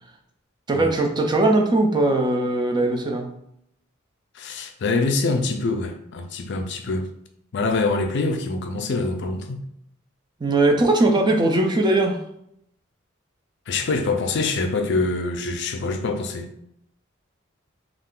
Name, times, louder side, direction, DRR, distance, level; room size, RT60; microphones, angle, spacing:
voice 1, 0.7-3.3 10.4-12.2, right 2 dB, 20° right, 2 dB, 0.4 m, -20 dB
voice 2, 4.3-7.1 7.5-9.6 13.7-16.5, left 3 dB, 60° left, 5 dB, 0.4 m, -25 dB
2.4 x 2.4 x 3.6 m, 0.76 s
head